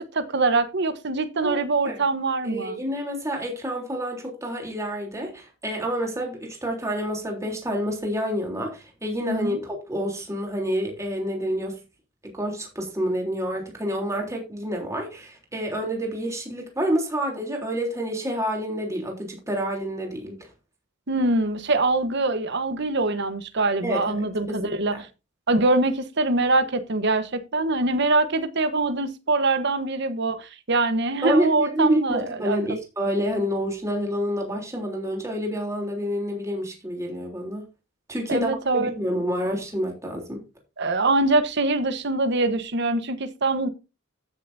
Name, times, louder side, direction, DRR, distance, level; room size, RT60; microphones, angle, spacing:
voice 1, 0.0-2.8 9.3-9.6 21.1-25.0 25.5-32.6 38.3-38.9 40.8-43.7, right 2 dB, 60° right, 1.2 m, -24 dB
voice 2, 2.4-11.8 12.2-20.5 23.8-24.1 24.5-25.0 31.2-37.7 38.1-40.4, equal, 15° right, 3.4 m, -28 dB
15.5 x 6.9 x 2.7 m
head